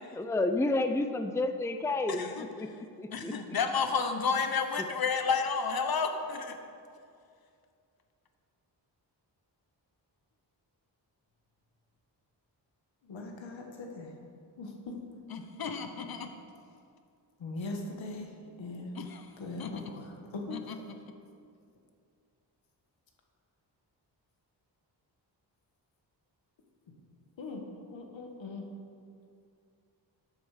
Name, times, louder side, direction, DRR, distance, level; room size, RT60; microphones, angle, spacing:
voice 1, 0.1-2.2 2.6-3.3, left 2 dB, 5° left, 8 dB, 0.5 m, -30 dB
voice 2, 2.1-2.5 3.1-6.6 15.3-16.3 18.9-19.3 19.6-19.7 20.5-20.8, left 5 dB, 55° left, 6 dB, 1.1 m, -31 dB
voice 3, 13.0-14.1 14.6-15.0 17.4-18.3 18.6-18.9 19.4-20.6 27.4-28.6, left 2 dB, 85° left, 2 dB, 1.8 m, -40 dB
12.5 x 8.3 x 5.1 m, 2.4 s
wide cardioid pair, 90°, 44 cm